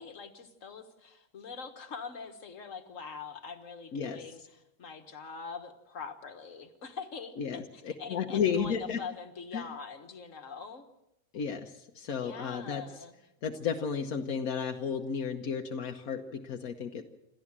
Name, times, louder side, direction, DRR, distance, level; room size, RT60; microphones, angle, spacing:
voice 1, 0.0-10.9 12.1-13.1, left 5 dB, 65° left, 6 dB, 1.9 m, -43 dB
voice 2, 3.9-4.2 7.4-9.0 9.5-9.6 11.3-13.0 13.4-17.0, left 6 dB, 85° left, 4 dB, 1.5 m, -33 dB
27.5 x 13.5 x 7.4 m, 0.92 s
omnidirectional pair, 1.4 m